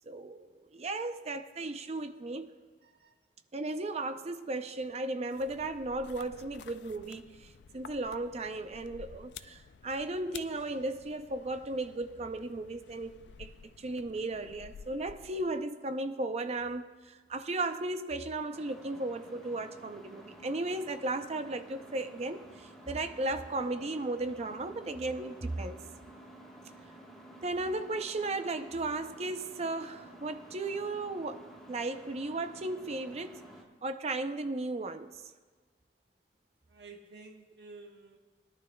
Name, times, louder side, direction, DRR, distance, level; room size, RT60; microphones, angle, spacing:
voice 1, 0.0-2.5 3.5-25.8 27.4-33.4 33.8-35.3, right 2 dB, 35° right, 0.5 m, -35 dB
voice 2, 2.8-3.2 36.7-38.2, right 3 dB, 65° right, 1.3 m, -51 dB
sound 1, 5.3-15.7, left 7 dB, 70° left, 0.4 m, -52 dB
sound 2, 18.5-33.6, right 1 dB, ahead, 1.3 m, -52 dB
20.5 x 11.0 x 2.2 m
head